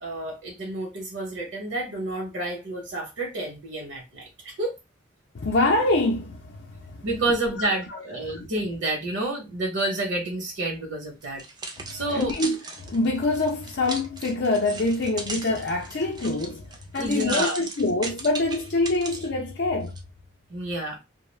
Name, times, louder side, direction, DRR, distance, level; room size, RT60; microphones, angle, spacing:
voice 1, 0.0-4.8 7.0-11.4 11.9-12.3 17.0-17.6 20.5-21.0, right 2 dB, 60° right, 0.8 m, -29 dB
voice 2, 5.3-7.0 7.6-8.5 11.8-19.9, left 2 dB, 55° left, 0.5 m, -25 dB
sound 1, 11.2-19.3 19.9-20.0, right 3 dB, 20° right, 0.4 m, -37 dB
2.2 x 2.1 x 3.2 m
head